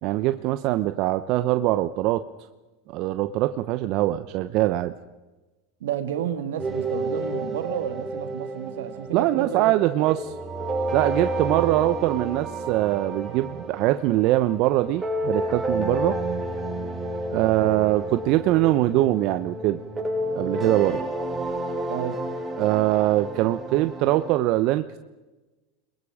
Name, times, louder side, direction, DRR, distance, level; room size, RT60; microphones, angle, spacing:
voice 1, 0.0-2.2 2.9-4.9 9.1-10.2 10.9-16.2 17.3-19.8 20.3-21.0 22.6-25.0, right 16 dB, 55° right, 10 dB, 0.9 m, -22 dB
voice 2, 5.8-10.1 11.5-11.8 17.3-17.6 21.9-22.2, right 9 dB, 80° right, 8 dB, 2.4 m, -31 dB
sound 1, 6.6-24.4, right 1 dB, 20° right, 5.9 m, -31 dB
29.5 x 22.0 x 5.1 m, 1.1 s
hypercardioid pair, 100°, 0 cm